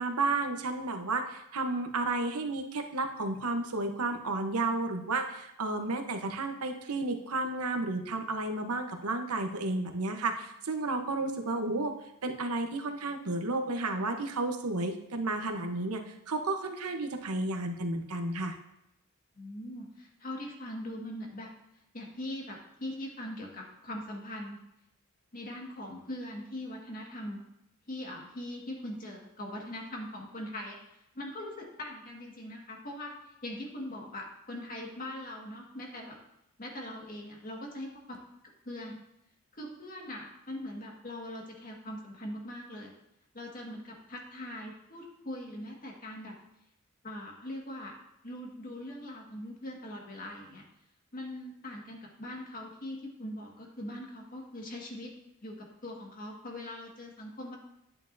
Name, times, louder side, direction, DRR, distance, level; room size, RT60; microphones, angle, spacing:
voice 1, 0.0-11.9 12.2-18.6, right 2 dB, 90° right, 5 dB, 1.0 m, -32 dB
voice 2, 19.4-21.5 21.9-24.6 25.3-27.4 27.9-30.8 31.1-36.2 36.6-38.2 38.7-39.0 39.5-42.9 43.3-46.3 47.0-47.9 48.2-50.6 51.1-55.1 55.4-57.6, left 1 dB, 40° left, 0 dB, 1.8 m, -41 dB
10.5 x 8.8 x 2.7 m, 0.85 s
head